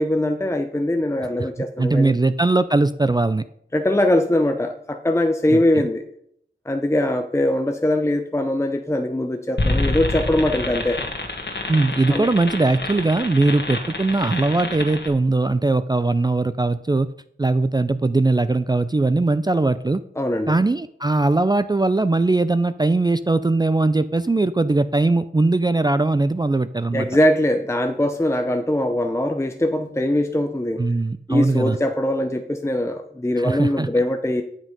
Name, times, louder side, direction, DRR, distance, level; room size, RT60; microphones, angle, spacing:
voice 1, 0.0-2.2 3.7-6.0 6.7-11.0 12.1-12.3 20.2-20.5 26.9-30.8 31.3-34.4, left 1 dB, 15° left, 6 dB, 0.7 m, -21 dB
voice 2, 1.8-3.4 5.5-5.6 11.7-17.1 17.4-20.0 20.5-27.1 30.8-31.8 33.4-33.9, right 2 dB, 20° right, 13 dB, 0.4 m, -20 dB
sound 1, 9.6-15.1, left 2 dB, 55° left, 1.8 m, -27 dB
9.9 x 6.1 x 5.2 m, 0.70 s
wide cardioid pair, 50°, 21 cm